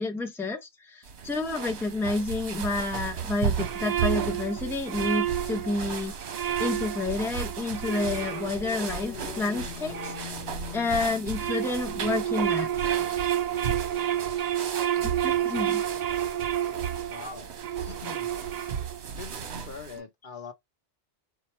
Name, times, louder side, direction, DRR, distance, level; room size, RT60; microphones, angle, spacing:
voice 1, 0.0-6.1 6.6-10.1 10.7-12.7 15.0-15.8, left 3 dB, 5° left, 0.7 m, -30 dB
sound 1, 1.0-20.0, right 7 dB, 85° right, 1.1 m, -36 dB
sound 2, 3.5-10.8 11.2-19.1, right 11 dB, 50° right, 0.6 m, -30 dB
sound 3, 7.8-14.4, left 13 dB, 85° left, 1.0 m, -43 dB
voice 2, 17.1-17.5 17.9-18.3 19.2-20.5, left 5 dB, 50° left, 1.0 m, -42 dB
4.5 x 2.1 x 4.2 m
omnidirectional pair, 1.1 m